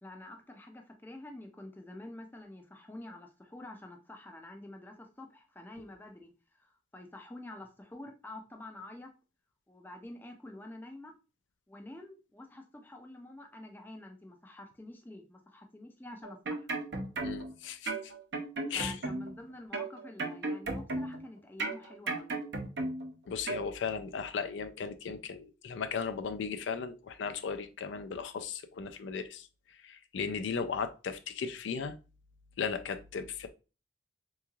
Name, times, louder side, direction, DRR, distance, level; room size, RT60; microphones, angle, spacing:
voice 1, 0.0-6.3 6.6-9.1 9.7-11.1 11.7-16.8 18.7-22.4, left 1 dB, 10° left, 0.4 m, -48 dB
sound 1, 16.2-17.5 17.9-19.4 19.7-21.3 21.6-23.1 23.5-23.7, right 2 dB, 70° right, 0.6 m, -35 dB
voice 2, 17.2-17.9 18.7-18.9 23.3-29.5 29.8-31.9 32.6-33.5, left 6 dB, 85° left, 0.4 m, -36 dB
3.6 x 3.0 x 2.3 m
head